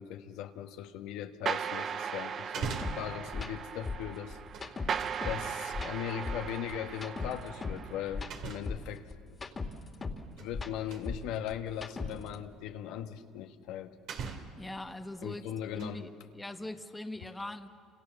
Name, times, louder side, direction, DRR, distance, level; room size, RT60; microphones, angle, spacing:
voice 1, 0.0-4.4 4.8-4.9 5.2-9.4 10.4-13.9 15.2-16.1, left 10 dB, 75° left, 6 dB, 1.4 m, -39 dB
sound 1, 1.5-8.3, right 7 dB, 40° right, 0.9 m, -38 dB
sound 2, 2.4-3.2 4.3-5.2 6.8-7.0 8.3-8.9 10.0-10.6 10.9-11.1 12.0-12.1 13.5-13.6 14.1-14.7 15.5-16.1 16.5-16.6, right 6 dB, 60° right, 2.7 m, -41 dB
sound 3, 2.8-3.0 3.3-3.5 3.9-5.4 5.7-7.8 8.1-10.2 10.5-12.4, left 4 dB, 25° left, 2.3 m, -38 dB
voice 2, 14.6-15.4 15.7-17.7, left 1 dB, 10° left, 6 dB, 1.5 m, -41 dB
29.5 x 27.5 x 7.0 m, 2.1 s
supercardioid pair, 105°, 0 cm